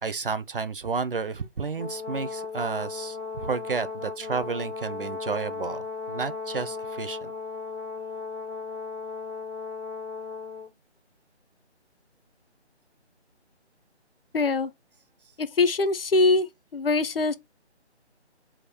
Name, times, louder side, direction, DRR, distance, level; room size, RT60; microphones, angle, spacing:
voice 1, 0.0-7.3, right 5 dB, 55° right, 0.4 m, -31 dB
Brass instrument, 1.8-10.7, left 4 dB, 90° left, 1.5 m, -36 dB
voice 2, 14.3-14.7 15.6-16.5 16.7-17.3, left 3 dB, 55° left, 0.5 m, -22 dB
3.5 x 2.3 x 3.3 m
figure-of-eight pair, 165°, 34 cm